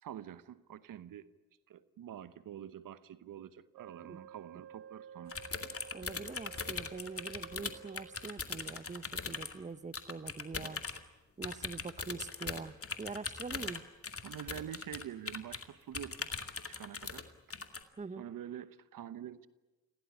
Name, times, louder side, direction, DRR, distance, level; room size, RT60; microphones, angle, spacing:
voice 1, 0.0-1.3 1.7-5.4 14.2-16.3 16.7-17.3 18.2-19.5, right 10 dB, 70° right, 15 dB, 1.0 m, -46 dB
Wind instrument woodwind instrument, 3.7-8.4, right 8 dB, 90° right, 1.8 m, -52 dB
sound 1, 5.3-9.5 9.9-11.0 11.4-15.6 15.9-17.2 17.5-17.8, left 4 dB, 40° left, 2.3 m, -40 dB
voice 2, 5.9-10.8 11.4-13.8 18.0-18.3, right 4 dB, 20° right, 16 dB, 0.9 m, -44 dB
26.0 x 17.0 x 9.8 m, 1.1 s
hypercardioid pair, 45°, 35 cm